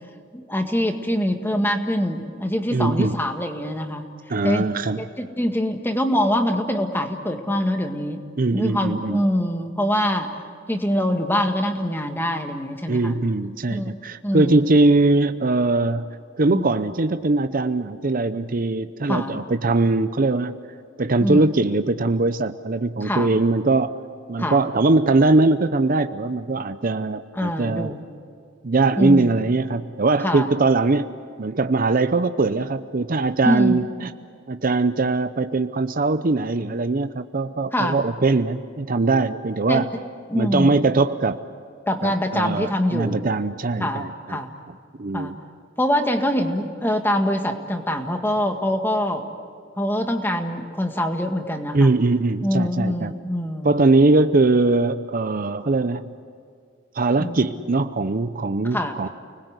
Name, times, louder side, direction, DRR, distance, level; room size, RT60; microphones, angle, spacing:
voice 1, 0.3-4.1 4.4-4.6 5.0-8.2 8.5-10.3 10.7-13.2 13.7-14.0 14.2-14.7 16.5-16.7 19.1-19.4 21.2-21.5 23.0-23.3 24.4-24.6 27.4-28.0 29.0-29.3 30.2-30.5 33.4-33.8 37.7-38.0 39.7-39.8 40.3-40.8 41.9-43.2 43.8-44.5 45.1-45.3 45.8-49.3 49.8-51.9 52.4-53.9 57.2-57.4 58.7-59.1, equal, 10° left, 5 dB, 1.8 m, -24 dB
voice 2, 2.7-3.2 4.3-5.0 8.4-9.2 12.9-16.1 16.4-20.5 21.0-24.0 24.3-27.9 28.6-31.1 31.4-34.1 34.5-39.9 40.3-41.4 42.0-44.4 45.0-45.4 51.7-53.1 53.6-56.1 56.9-59.1, right 3 dB, 45° right, 11 dB, 0.7 m, -21 dB
30.0 x 20.5 x 8.2 m, 2.2 s
head